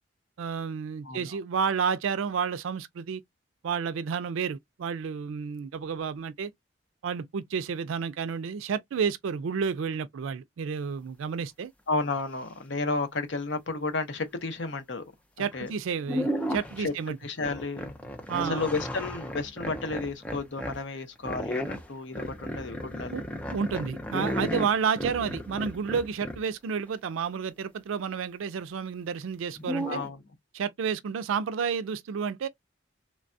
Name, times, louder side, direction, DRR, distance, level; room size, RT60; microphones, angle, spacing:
voice 1, 0.4-3.2 3.6-6.5 7.0-11.7 15.4-17.2 18.3-18.7 23.1-23.2 23.5-30.0 30.5-32.5, right 6 dB, 85° right, 0.4 m, -30 dB
voice 2, 11.9-15.0 15.4-15.7 16.8-16.9 17.2-17.9 18.4-23.2 29.9-30.2, left 3 dB, 65° left, 0.7 m, -32 dB
sound 1, 15.5-15.7 16.0-16.9 17.4-20.8 21.3-26.5 29.6-30.1, equal, 5° left, 0.4 m, -34 dB
3.2 x 2.2 x 2.6 m
head